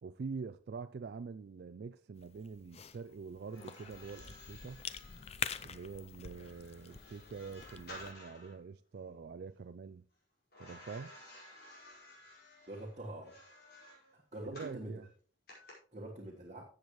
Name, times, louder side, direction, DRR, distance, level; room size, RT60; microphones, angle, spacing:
voice 1, 0.0-4.8 5.6-10.0 10.6-11.1 14.5-15.1, right 5 dB, 55° right, 0.3 m, -45 dB
Cough / Chewing mastication, 2.2-8.1, left 7 dB, 35° left, 0.5 m, -46 dB
sound 1, 3.4-8.6 10.5-14.8 15.5-15.7, left 1 dB, 50° left, 5.1 m, -55 dB
voice 2, 12.7-13.3 14.1-14.9 15.9-16.6, right 1 dB, 40° right, 1.5 m, -45 dB
14.0 x 8.0 x 3.1 m
head